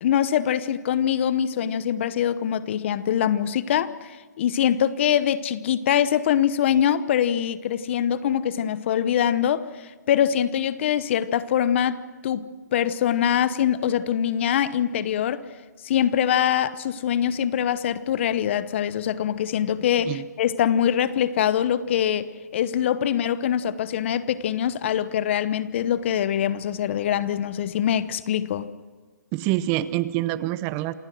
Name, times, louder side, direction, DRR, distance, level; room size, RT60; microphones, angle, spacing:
voice 1, 0.0-9.7 10.1-15.4 15.8-28.7, left 9 dB, 40° left, 15 dB, 1.0 m, -23 dB
voice 2, 29.3-30.9, right 15 dB, 25° right, 16 dB, 0.6 m, -26 dB
28.0 x 16.5 x 6.3 m, 1.3 s
hypercardioid pair, 145°, 9 cm